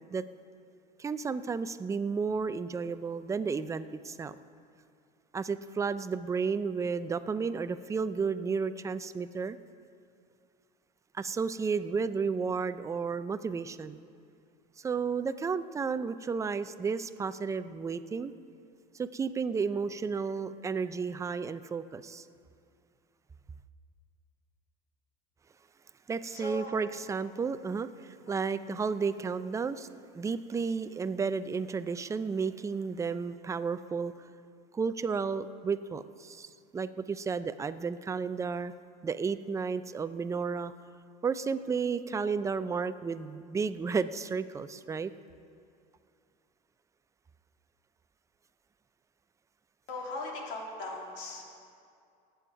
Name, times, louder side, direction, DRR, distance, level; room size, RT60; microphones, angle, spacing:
voice 1, 1.0-4.4 5.3-9.6 11.1-14.0 14.8-18.3 18.9-22.3 26.1-29.9 30.1-34.1 34.7-38.7 39.0-40.7 41.2-45.1, right 5 dB, 15° right, 12 dB, 0.4 m, -32 dB
voice 2, 26.3-26.7 49.9-51.6, left 2 dB, 70° left, -1 dB, 2.8 m, -39 dB
19.5 x 7.9 x 4.7 m, 2.4 s
supercardioid pair, 115°, 19 cm